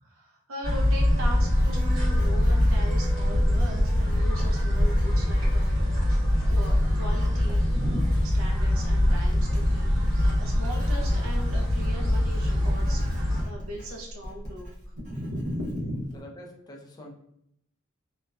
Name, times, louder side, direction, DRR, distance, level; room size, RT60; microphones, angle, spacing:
voice 1, 0.0-6.0 6.5-13.0 13.4-14.7 15.0-16.1, equal, 85° right, 0 dB, 0.7 m, -38 dB
sound 1, 0.6-13.4, left 1 dB, 65° right, 1.1 m, -23 dB
Writing, 1.3-16.2, equal, 35° right, 0.6 m, -40 dB
voice 2, 15.1-15.5 16.1-17.1, equal, 20° left, 0 dB, 0.4 m, -46 dB
2.6 x 2.2 x 2.2 m, 0.73 s
head